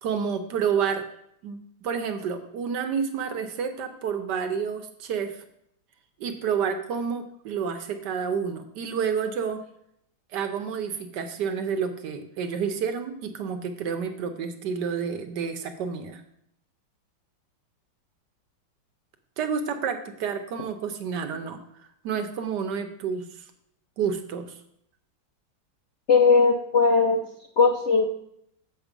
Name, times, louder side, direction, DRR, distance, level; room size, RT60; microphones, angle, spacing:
voice 1, 0.0-1.0 1.4-5.4 6.2-9.6 10.3-16.2 19.4-23.4 24.0-24.5, right 6 dB, 65° right, 7 dB, 1.3 m, -29 dB
voice 2, 26.1-27.2 27.6-28.0, left 4 dB, 65° left, 3 dB, 0.7 m, -18 dB
7.3 x 5.9 x 5.2 m, 0.72 s
omnidirectional pair, 2.1 m